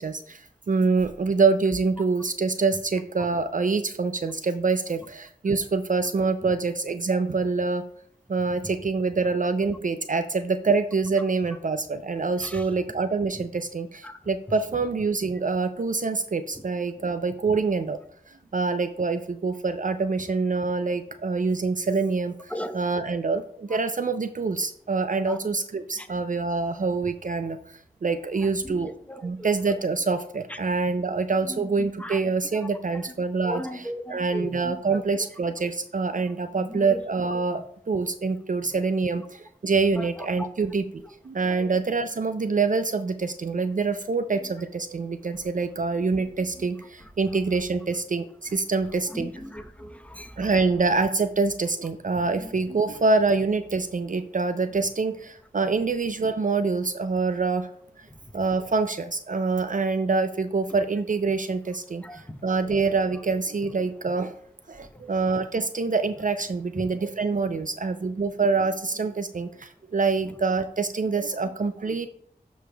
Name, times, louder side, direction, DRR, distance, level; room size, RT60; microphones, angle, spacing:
voice 1, 0.0-7.8 8.3-18.0 18.3-28.9 29.2-49.3 50.4-57.7 58.0-58.1 58.3-64.3 64.7-72.1, right 4 dB, 50° right, 10 dB, 0.4 m, -26 dB
voice 2, 28.7-29.5 31.5-31.6 32.0-32.2 32.5-32.6 33.1-33.2 33.4-34.8 36.7-37.0 40.0-40.1 40.4-40.5 41.6-41.7 49.1-50.4 62.0-62.2, equal, 10° left, 6 dB, 0.8 m, -36 dB
12.0 x 5.2 x 2.3 m, 0.64 s
wide cardioid pair, 45°, 17 cm